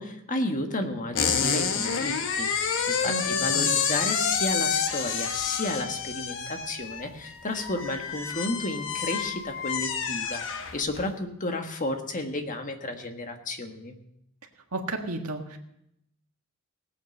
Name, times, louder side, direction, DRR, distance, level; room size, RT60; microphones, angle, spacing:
voice 1, 0.0-14.0, left 2 dB, 35° left, 5 dB, 1.5 m, -32 dB
sound 1, 1.1-11.1, left 6 dB, 60° left, 1.1 m, -28 dB
voice 2, 3.0-3.7 14.7-15.6, right 2 dB, 85° right, 3 dB, 1.7 m, -33 dB
18.5 x 8.5 x 5.3 m, 0.79 s
head